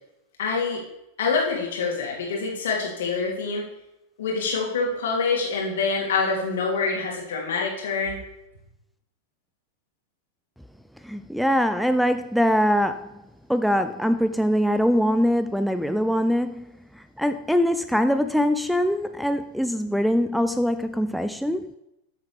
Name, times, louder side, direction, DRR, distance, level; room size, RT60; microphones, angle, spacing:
voice 1, 0.4-0.8 1.2-3.6 4.2-8.2, left 4 dB, 60° left, 2.5 m, -26 dB
voice 2, 11.0-13.1 13.5-21.7, equal, ahead, 0.3 m, -23 dB
13.0 x 6.6 x 3.5 m
figure-of-eight pair, 90°, 0 cm